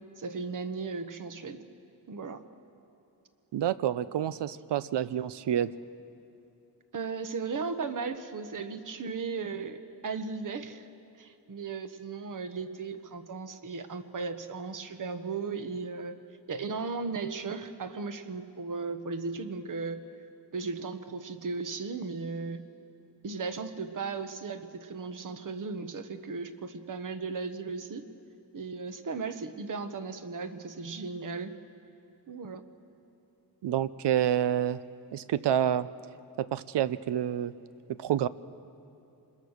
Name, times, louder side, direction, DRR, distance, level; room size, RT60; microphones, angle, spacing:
voice 1, 0.2-1.6 2.1-2.4 6.9-10.9 11.2-16.2 16.5-20.1 20.5-22.7 23.2-28.1 28.5-31.5 32.3-32.6, right 4 dB, 50° right, 9 dB, 1.2 m, -36 dB
voice 2, 3.5-5.7 33.6-34.8 35.1-35.9 36.4-37.5 37.9-38.3, right 10 dB, 80° right, 16 dB, 0.7 m, -28 dB
26.0 x 21.0 x 6.5 m, 2.8 s
wide cardioid pair, 135°, 40 cm